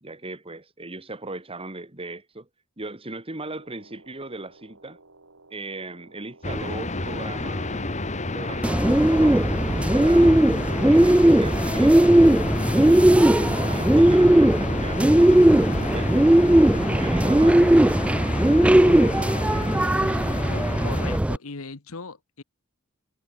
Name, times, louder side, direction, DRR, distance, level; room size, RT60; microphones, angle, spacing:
voice 1, 0.0-2.5 2.8-5.0 5.5-12.1 12.8-17.7 18.8-20.3, right 2 dB, 25° right, 2.6 m, -38 dB
sound 1, 3.4-19.4, right 2 dB, 70° right, 4.2 m, -54 dB
sound 2, 6.4-21.2, left 2 dB, 35° left, 2.1 m, -31 dB
Bird, 8.6-21.4, right 1 dB, 5° right, 0.3 m, -18 dB
voice 2, 20.5-22.4, left 4 dB, 85° left, 1.3 m, -38 dB
head